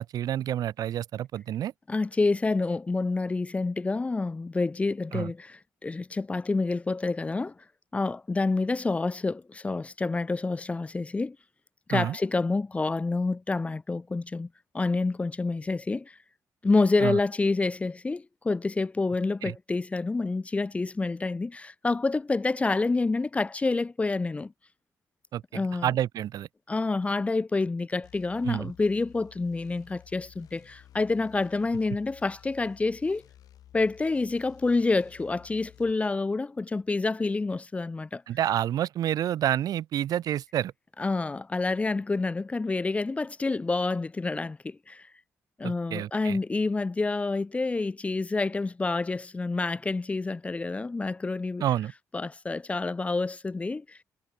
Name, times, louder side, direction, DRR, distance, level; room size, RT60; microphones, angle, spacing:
voice 1, 0.0-1.7 5.1-5.3 11.9-12.2 17.0-17.2 19.4-19.6 25.3-26.5 28.4-28.7 38.3-40.7 45.6-46.4 51.6-51.9, right 11 dB, 75° right, 2.1 m, -29 dB
voice 2, 1.9-7.5 7.9-11.4 11.9-14.5 14.7-16.2 16.6-24.5 25.5-25.9 26.7-33.2 33.7-38.2 41.0-45.0 45.6-51.6 52.1-54.0, left 3 dB, 20° left, 0.7 m, -28 dB
sound 1, 28.0-35.9, left 11 dB, 80° left, 3.4 m, -54 dB
cardioid pair, 110°, 6 cm